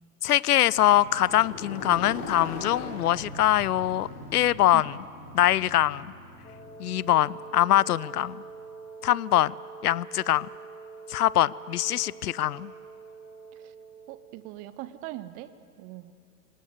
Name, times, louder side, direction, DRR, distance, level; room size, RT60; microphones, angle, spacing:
voice 1, 0.2-4.9 5.3-6.1 6.8-8.4 9.0-9.5 9.8-10.5 11.1-12.7, left 13 dB, 65° left, 22 dB, 0.6 m, -23 dB
Motorcycle, 0.6-8.6, left 2 dB, 50° left, 5.6 m, -41 dB
Wind instrument woodwind instrument, 6.4-14.3, right 4 dB, 15° left, 2.9 m, -45 dB
voice 2, 14.1-15.5 15.8-16.1, right 16 dB, 15° right, 15 dB, 0.5 m, -40 dB
26.0 x 18.5 x 8.0 m, 2.4 s
figure-of-eight pair, 100°, 49 cm